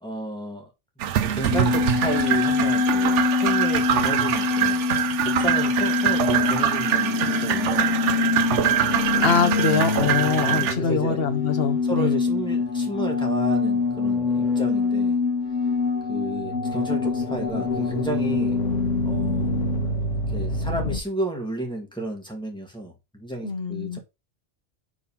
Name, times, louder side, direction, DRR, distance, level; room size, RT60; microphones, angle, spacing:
voice 1, 0.0-0.7 1.2-4.9 5.2-8.3 9.7-9.9 10.4-11.2 11.9-15.2 16.1-18.6 19.0-19.5 20.3-24.0, right 1 dB, 5° left, 1.7 m, -32 dB
sound 1, 1.0-10.7, right 10 dB, 75° right, 0.9 m, -24 dB
sound 2, 1.5-21.0, left 4 dB, 80° left, 1.7 m, -24 dB
voice 2, 9.2-12.1 23.4-24.0, left 6 dB, 55° left, 1.1 m, -24 dB
4.9 x 4.0 x 5.5 m
omnidirectional pair, 1.3 m